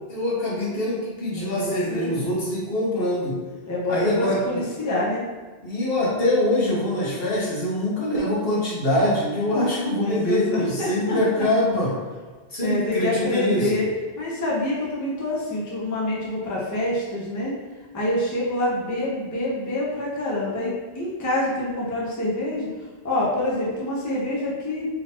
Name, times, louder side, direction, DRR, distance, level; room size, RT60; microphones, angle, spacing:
voice 1, 0.1-3.4 3.9-4.6 5.6-11.9 12.5-13.8, left 1 dB, 70° left, -6 dB, 1.3 m, -24 dB
voice 2, 1.3-2.3 3.7-5.2 10.0-11.2 12.6-13.9 14.2-17.5 17.9-22.7 23.0-24.9, left 1 dB, 20° left, -5 dB, 0.7 m, -26 dB
3.9 x 2.9 x 2.9 m, 1.4 s
omnidirectional pair, 1.0 m